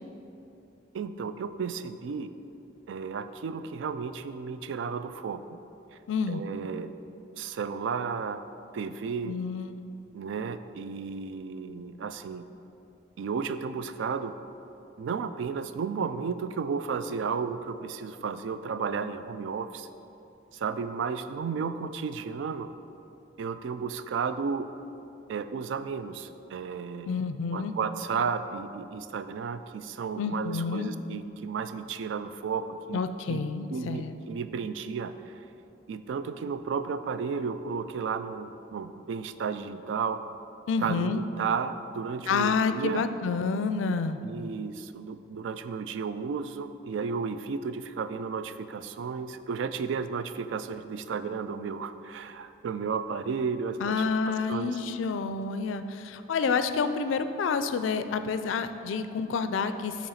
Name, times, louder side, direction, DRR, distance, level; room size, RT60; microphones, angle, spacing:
voice 1, 0.9-2.3 2.9-5.4 6.3-6.9 7.4-8.4 8.7-9.4 10.1-12.4 13.2-14.3 15.0-19.9 20.5-22.7 23.4-24.7 25.3-27.2 27.5-33.0 33.3-33.4 33.7-35.1 35.9-40.2 40.8-43.0 44.2-54.8, right 5 dB, 80° right, 11 dB, 0.3 m, -33 dB
voice 2, 6.1-6.4 9.2-9.7 27.1-27.7 30.2-30.9 32.9-34.2 40.7-41.2 42.3-44.2 53.8-60.1, left 5 dB, 90° left, 10 dB, 0.4 m, -29 dB
8.7 x 3.0 x 5.6 m, 2.7 s
head